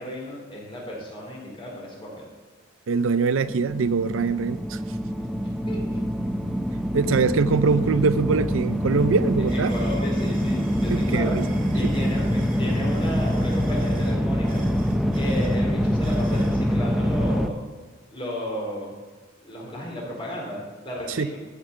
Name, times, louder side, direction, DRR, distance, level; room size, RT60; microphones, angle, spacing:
voice 1, 0.0-2.3 5.2-6.0 9.5-11.4 11.7-14.6 15.1-17.6 18.1-18.9 19.4-21.4, left 1 dB, 25° left, -3 dB, 4.5 m, -34 dB
voice 2, 2.9-4.8 6.9-9.7 10.9-11.4 21.1-21.3, right 4 dB, 80° right, 14 dB, 0.5 m, -23 dB
sound 1, 3.5-17.5, equal, ahead, 0.6 m, -25 dB
sound 2, 8.0-8.1 8.5-16.6, right 3 dB, 40° right, 2.6 m, -47 dB
14.5 x 6.8 x 6.9 m, 1.3 s
head